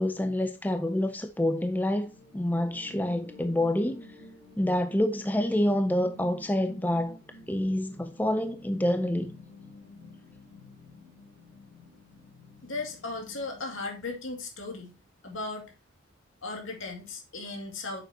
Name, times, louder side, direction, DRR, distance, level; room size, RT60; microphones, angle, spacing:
voice 1, 0.0-2.1 2.3-4.1 4.6-7.2 7.5-9.3, left 1 dB, 10° left, 0.5 m, -27 dB
sound 1, 1.7-13.7, left 1 dB, 35° left, 3.4 m, -51 dB
voice 2, 12.6-14.9 15.2-15.7 16.4-18.0, left 3 dB, 75° left, 2.4 m, -36 dB
9.5 x 6.8 x 2.8 m
head